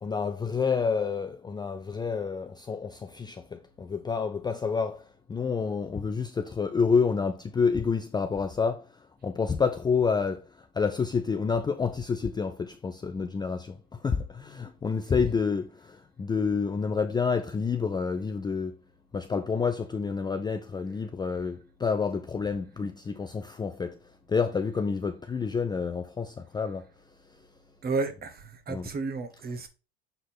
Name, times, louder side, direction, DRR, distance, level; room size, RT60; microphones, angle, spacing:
voice 1, 0.0-5.0 5.3-8.9 9.2-10.5 10.7-18.8 19.1-24.0 24.3-26.9 28.7-28.9, left 5 dB, 15° left, 0.5 m, -28 dB
voice 2, 27.8-29.7, right 4 dB, 30° right, 1.3 m, -32 dB
6.8 x 3.9 x 3.8 m
hypercardioid pair, 90°, 31 cm